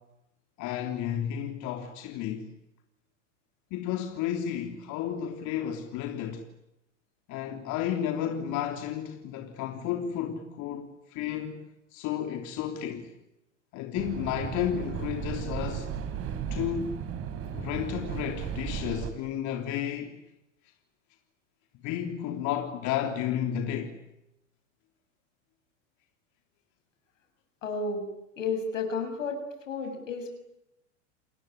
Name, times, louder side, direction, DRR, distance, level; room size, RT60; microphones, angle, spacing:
voice 1, 0.6-2.5 3.7-6.5 7.3-11.6 11.9-13.1 13.7-15.9 16.5-17.1 17.5-20.2 21.8-24.0, left 10 dB, 50° left, 3.5 m, -32 dB
sound 1, 14.0-19.1, right 8 dB, 40° right, 4.0 m, -35 dB
voice 2, 27.6-28.0 28.4-29.4 29.7-30.3, left 4 dB, 85° left, 6.9 m, -31 dB
29.5 x 21.0 x 9.6 m
hypercardioid pair, 100°, 37 cm